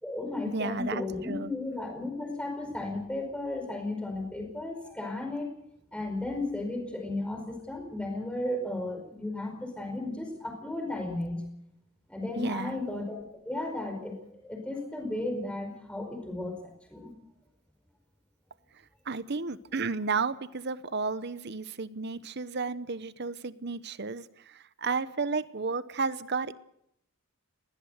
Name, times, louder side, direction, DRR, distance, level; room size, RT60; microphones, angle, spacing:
voice 1, 0.0-5.5 5.9-11.4 12.1-17.1, left 2 dB, 5° left, 3 dB, 4.8 m, -34 dB
voice 2, 0.5-1.5 12.4-12.8 19.1-26.5, right 4 dB, 50° right, 15 dB, 0.9 m, -32 dB
20.5 x 18.0 x 8.0 m, 0.77 s
head